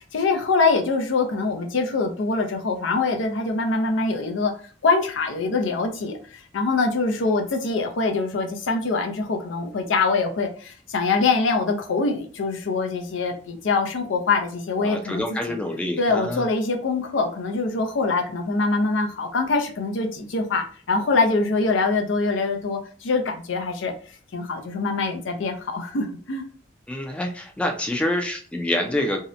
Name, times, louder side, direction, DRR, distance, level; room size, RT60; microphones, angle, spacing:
voice 1, 0.1-4.5 4.8-15.2 15.5-15.6 16.0-23.9 24.3-26.4, left 3 dB, 90° left, 4 dB, 0.5 m, -24 dB
voice 2, 14.8-16.4 26.9-29.2, left 1 dB, 5° left, 2 dB, 0.3 m, -27 dB
2.7 x 2.1 x 2.4 m, 0.41 s
head